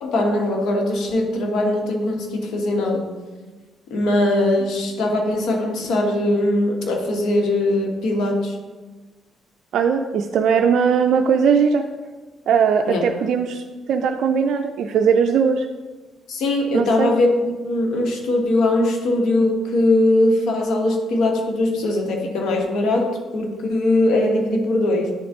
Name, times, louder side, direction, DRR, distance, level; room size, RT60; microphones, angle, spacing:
voice 1, 0.0-3.1 3.9-8.6 12.9-13.0 16.3-25.1, left 1 dB, 80° left, 2 dB, 1.2 m, -20 dB
voice 2, 9.7-11.9 12.5-13.6 13.9-15.7 16.7-17.1, right 6 dB, 75° right, 3 dB, 0.4 m, -19 dB
10.0 x 3.7 x 3.5 m, 1.3 s
cardioid pair, 90°, 0 cm